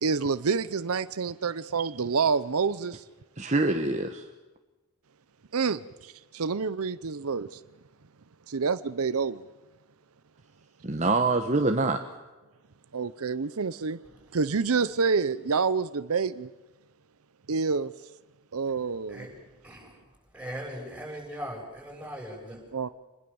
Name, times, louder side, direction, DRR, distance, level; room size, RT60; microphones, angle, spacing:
voice 1, 0.0-3.0 5.5-7.6 8.5-9.5 12.9-14.0 14.3-16.5 17.5-17.9 18.5-19.3 22.7-22.9, right 5 dB, 75° right, 0.7 m, -28 dB
voice 2, 3.4-4.3 10.8-12.0, right 3 dB, 30° right, 1.2 m, -25 dB
voice 3, 19.6-22.8, equal, 5° right, 7.0 m, -40 dB
26.5 x 21.0 x 7.1 m
head